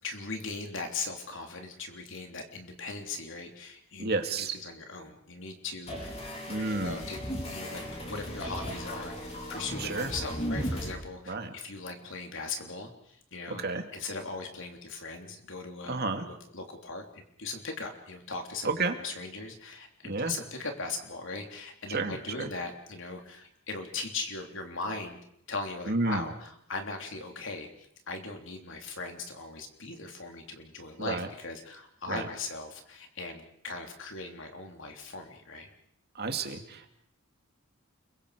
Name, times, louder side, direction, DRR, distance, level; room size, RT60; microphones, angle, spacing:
voice 1, 0.0-6.2 6.5-13.6 13.9-25.2 25.5-35.7, left 3 dB, 65° left, 4 dB, 3.4 m, -39 dB
voice 2, 4.0-4.6 6.5-7.0 9.8-10.1 11.3-11.5 13.6-13.8 15.9-16.3 18.6-19.0 20.1-20.3 21.9-22.5 25.9-26.2 31.0-31.3 32.1-32.3 36.2-36.9, right 3 dB, 50° right, 6 dB, 2.3 m, -31 dB
sound 1, 5.9-10.9, equal, 30° left, 5.0 m, -36 dB
29.5 x 22.5 x 5.1 m, 0.72 s
head